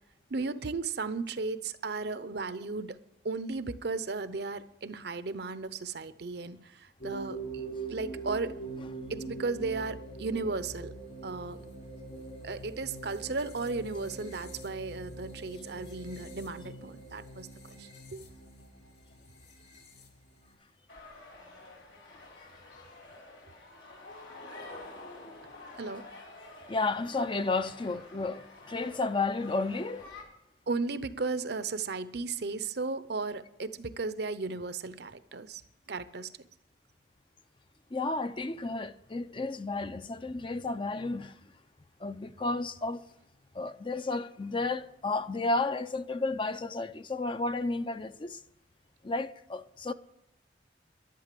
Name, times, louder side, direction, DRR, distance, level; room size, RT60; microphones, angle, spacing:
voice 1, 0.3-8.6 9.1-10.9 11.2-11.6 12.4-18.2 25.8-26.0 30.7-35.6 35.9-36.3, right 3 dB, 60° right, 0.7 m, -35 dB
sound 1, 7.0-20.5, right 3 dB, 60° left, 4.2 m, -43 dB
sound 2, 20.9-30.2, left 2 dB, 85° left, 4.2 m, -49 dB
voice 2, 26.7-30.1 37.9-41.3 42.0-43.0 43.5-48.4 49.0-49.9, left 3 dB, 30° left, 0.5 m, -32 dB
11.5 x 11.5 x 6.8 m
head